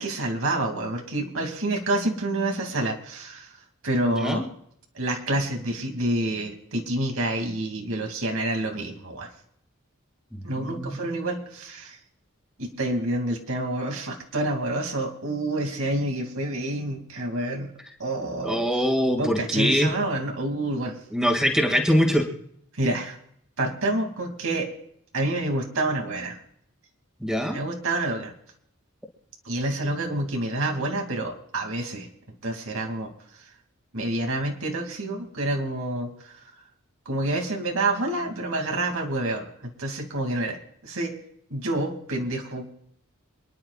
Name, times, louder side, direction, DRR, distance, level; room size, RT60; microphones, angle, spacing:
voice 1, 0.0-3.6 3.8-4.4 4.9-9.3 10.4-12.0 12.6-17.7 18.0-18.9 19.2-21.0 22.7-23.2 23.6-24.7 25.1-26.4 27.5-28.3 29.4-32.1 32.4-33.1 33.9-36.3 37.1-40.6 40.8-41.1 41.5-42.7, right 1 dB, 75° right, 2 dB, 2.7 m, -28 dB
voice 2, 10.6-11.1 18.4-19.9 21.1-22.3 27.2-27.6, equal, 5° right, 1 dB, 2.2 m, -23 dB
28.0 x 11.0 x 2.5 m, 0.68 s
head